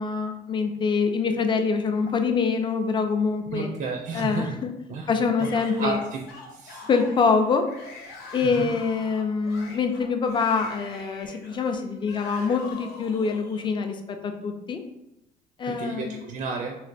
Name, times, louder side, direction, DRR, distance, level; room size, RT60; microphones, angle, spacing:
voice 1, 0.0-3.7 4.1-4.7 5.1-6.0 6.9-7.7 8.3-14.8 15.6-16.2, left 5 dB, 30° left, 6 dB, 0.4 m, -25 dB
voice 2, 3.5-4.6 4.9-5.1 5.4-5.5 5.8-6.2 6.5-6.9 8.4-8.7 15.7-16.8, right 4 dB, 55° right, 1 dB, 0.4 m, -32 dB
Yell / Screaming, 5.4-13.7, left 3 dB, 80° left, 0.9 m, -44 dB
3.1 x 2.8 x 2.5 m, 0.89 s
cardioid pair, 110°, 17 cm